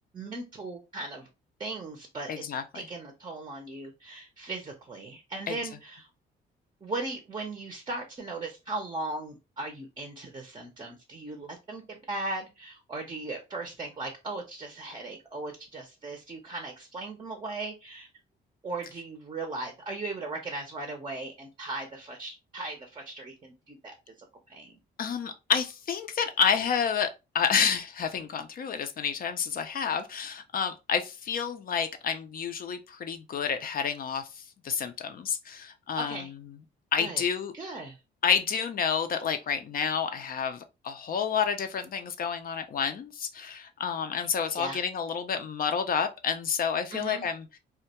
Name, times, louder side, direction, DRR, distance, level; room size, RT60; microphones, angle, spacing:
voice 1, 0.1-1.3 1.6-2.4 2.7-6.1 6.8-18.1 18.6-24.8 36.0-36.3 37.0-37.2 37.5-38.0 44.6-44.8 46.9-47.3, right 2 dB, 25° right, 0.6 m, -38 dB
voice 2, 2.3-2.6 5.5-5.6 25.0-36.3 36.9-37.5 38.2-47.5, left 7 dB, 45° left, 0.4 m, -29 dB
2.2 x 2.1 x 2.8 m
cardioid pair, 90°, 20 cm